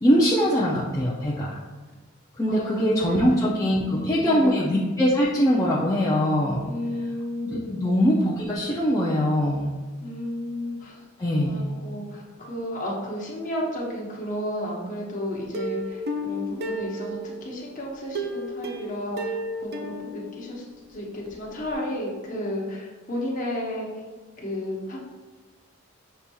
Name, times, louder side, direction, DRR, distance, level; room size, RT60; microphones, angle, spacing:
voice 1, 0.0-1.6 2.4-6.6 7.4-9.7 11.2-11.6, equal, 15° left, -6 dB, 0.4 m, -22 dB
voice 2, 2.5-3.2 3.8-4.6 6.6-7.9 10.0-11.0 11.4-19.3 19.6-20.6 20.9-24.0 24.4-25.0, left 1 dB, 40° left, -3 dB, 0.9 m, -32 dB
Plucked string instrument, 15.5-17.5 18.1-20.9 21.3-21.4 21.7-21.8, equal, 50° right, 0.4 m, -32 dB
6.6 x 2.9 x 2.3 m, 1.4 s
head